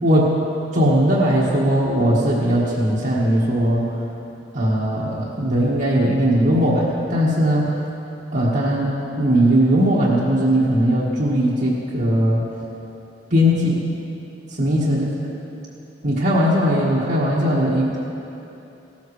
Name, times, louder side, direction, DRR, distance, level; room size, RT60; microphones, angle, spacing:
voice 1, 0.0-0.3 0.7-3.9 4.5-7.7 8.3-8.9 9.2-12.4 13.3-13.8 14.6-15.1 16.0-18.0, equal, 55° right, -9 dB, 1.6 m, -19 dB
16.0 x 13.0 x 3.2 m, 2.9 s
head